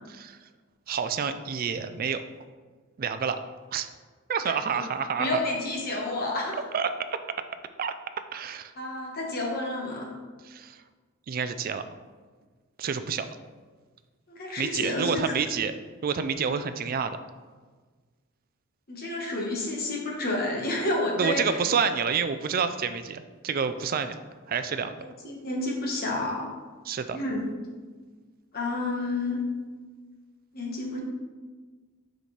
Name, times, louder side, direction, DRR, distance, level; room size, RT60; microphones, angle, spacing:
voice 1, 0.1-0.4 0.9-2.2 3.0-3.4 3.7-3.9 4.3-5.3 6.7-6.9 7.8-7.9 8.3-8.7 10.4-10.8 11.3-11.8 12.8-13.3 14.6-15.7 16.0-17.2 21.2-24.1 24.5-25.0 26.8-27.2, right 6 dB, 40° right, 10 dB, 0.4 m, -28 dB
voice 2, 5.2-6.6 8.8-10.1 14.3-15.1 18.9-21.6 25.2-26.5 27.1-27.5 28.5-29.4 30.5-31.0, left 2 dB, 45° left, -1 dB, 1.3 m, -30 dB
7.6 x 5.1 x 3.2 m, 1.4 s
head